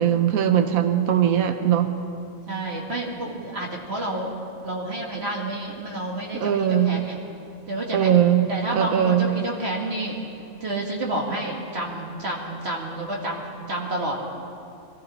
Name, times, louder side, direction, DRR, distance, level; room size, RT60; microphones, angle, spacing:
voice 1, 0.0-1.9 6.3-7.0 7.9-9.3, right 9 dB, 90° right, 8 dB, 1.3 m, -20 dB
voice 2, 2.5-4.3 4.6-7.2 7.7-8.1 8.5-10.2 10.6-13.4 13.7-14.2, right 1 dB, 50° right, -2 dB, 2.4 m, -29 dB
23.0 x 14.0 x 4.3 m, 2.7 s
omnidirectional pair, 1.4 m